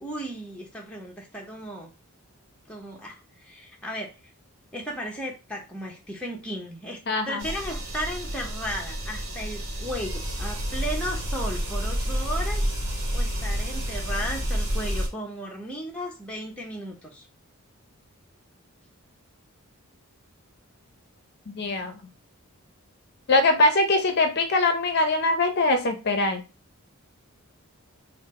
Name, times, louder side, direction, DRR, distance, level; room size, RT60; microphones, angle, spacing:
voice 1, 0.0-1.9 2.7-4.1 4.7-7.0 7.3-12.7 13.1-17.3, equal, 5° left, -1 dB, 0.6 m, -35 dB
voice 2, 7.1-7.4 21.5-21.9 23.3-26.4, left 2 dB, 45° left, 6 dB, 0.5 m, -22 dB
sound 1, 7.4-15.1, equal, 50° right, 1.0 m, -29 dB
3.8 x 2.0 x 4.1 m, 0.29 s
head